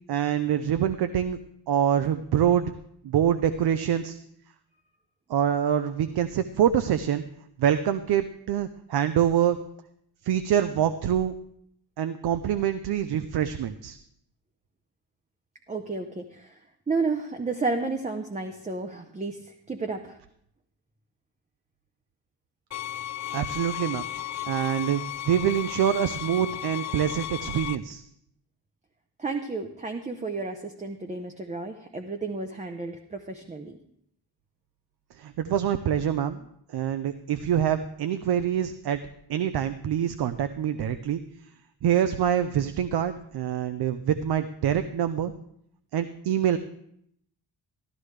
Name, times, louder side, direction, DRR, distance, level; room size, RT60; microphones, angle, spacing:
voice 1, 0.1-1.4 1.7-2.7 3.0-4.2 5.3-7.2 7.6-9.6 10.2-11.3 12.0-14.0 23.3-24.1 24.5-28.0 35.2-36.4 36.7-39.0 39.3-41.2 41.8-45.3 45.9-46.6, right 9 dB, 65° right, 11 dB, 0.6 m, -25 dB
voice 2, 15.7-20.2 29.2-33.8, right 3 dB, 20° right, 5 dB, 0.6 m, -32 dB
sound 1, 22.7-27.8, left 13 dB, 45° left, 0.4 m, -34 dB
13.0 x 13.0 x 3.3 m, 0.71 s
wide cardioid pair, 125°, 41 cm